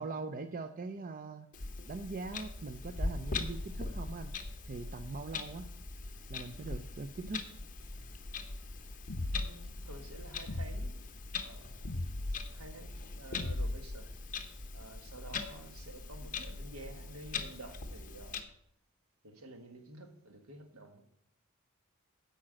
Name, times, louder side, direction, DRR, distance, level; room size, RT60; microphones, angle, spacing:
voice 1, 0.0-1.5 1.9-4.3 4.6-5.7 6.3-7.4 15.3-15.4, right 3 dB, 40° right, 0.5 m, -41 dB
Clock, 1.5-18.4, left 3 dB, 40° left, 0.9 m, -41 dB
sound 1, 9.1-9.7 10.5-10.9 11.8-12.3 13.3-14.0, left 1 dB, 60° left, 0.8 m, -36 dB
voice 2, 9.3-10.9 11.4-14.1 14.7-18.4 19.2-21.0, right 2 dB, 75° right, 1.5 m, -51 dB
8.8 x 5.3 x 7.5 m
head